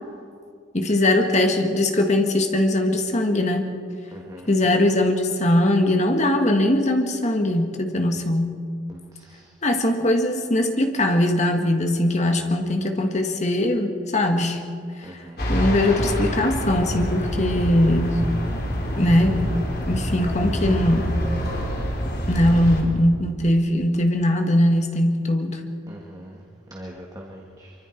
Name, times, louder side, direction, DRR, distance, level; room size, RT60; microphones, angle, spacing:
voice 1, 0.7-3.7 4.5-8.6 9.6-14.6 15.5-18.2 19.0-19.4 19.9-21.2 22.3-25.6, left 1 dB, 40° left, 4 dB, 1.9 m, -21 dB
voice 2, 4.1-4.5 8.9-9.5 15.0-15.5 25.9-26.4 26.7-27.7, equal, 20° right, -1 dB, 1.6 m, -42 dB
sound 1, 15.4-22.8, equal, 55° left, 3.8 m, -26 dB
24.5 x 24.0 x 4.6 m, 2.2 s
head